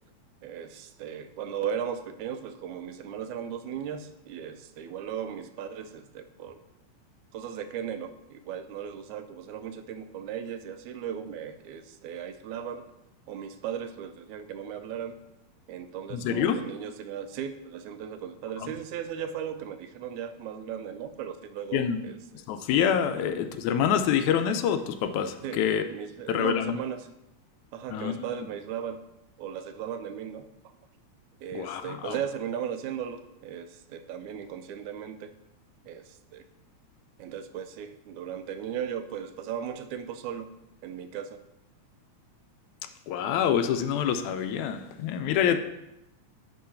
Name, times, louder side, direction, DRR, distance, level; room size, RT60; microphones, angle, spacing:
voice 1, 0.4-6.6 7.3-12.9 13.3-15.2 15.7-22.2 23.2-23.3 25.4-25.6 25.9-27.1 27.7-29.1 29.4-30.5 31.4-35.3 35.9-36.4 37.2-40.5 40.8-41.4, right 8 dB, 90° right, 9 dB, 2.1 m, -37 dB
voice 2, 16.1-16.6 18.6-18.7 21.7-22.0 22.5-25.8 26.3-26.8 27.9-28.1 31.5-32.2 43.1-45.6, left 8 dB, 85° left, 8 dB, 2.0 m, -26 dB
10.0 x 3.8 x 5.6 m, 0.89 s
omnidirectional pair, 3.3 m